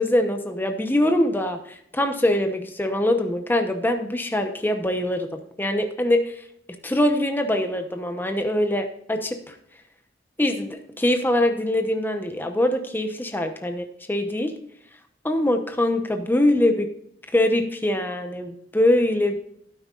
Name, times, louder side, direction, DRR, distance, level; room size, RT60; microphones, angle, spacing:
voice 1, 0.0-5.3 5.6-6.4 6.8-9.5 10.4-14.5 15.2-16.9 17.3-19.4, left 1 dB, 10° left, 6 dB, 0.9 m, -23 dB
12.0 x 9.5 x 2.5 m, 0.68 s
head